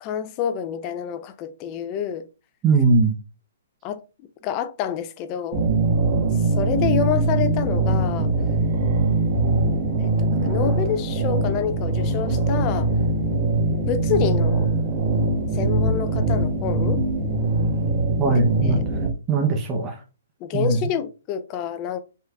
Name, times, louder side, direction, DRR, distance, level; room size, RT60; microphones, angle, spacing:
voice 1, 0.0-2.3 3.8-4.0 4.4-5.6 6.6-8.3 10.0-12.9 13.7-14.7 15.5-17.0 18.3-18.9 20.4-22.0, left 8 dB, 30° left, 0.5 m, -27 dB
voice 2, 2.6-3.1 18.2-18.8 19.3-20.0 20.5-20.9, right 3 dB, 20° right, 0.7 m, -20 dB
sound 1, 5.5-19.1, right 2 dB, 40° right, 1.5 m, -22 dB
5.4 x 3.7 x 2.3 m
hypercardioid pair, 145°, 0 cm